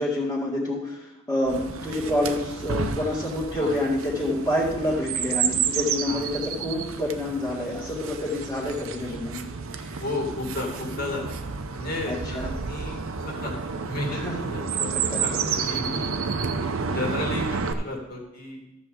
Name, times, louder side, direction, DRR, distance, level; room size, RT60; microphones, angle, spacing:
voice 1, 0.0-9.5 9.9-10.0 12.1-12.5 14.1-14.5 14.9-15.2 15.8-15.9, left 1 dB, 15° left, -7 dB, 1.8 m, -28 dB
Chirp tweet, 1.5-17.7, right 6 dB, 80° right, 0.7 m, -30 dB
voice 2, 10.0-11.4 11.7-13.5 13.9-16.1 16.9-18.6, left 2 dB, 50° left, -1 dB, 2.3 m, -33 dB
13.5 x 7.1 x 3.8 m, 0.91 s
head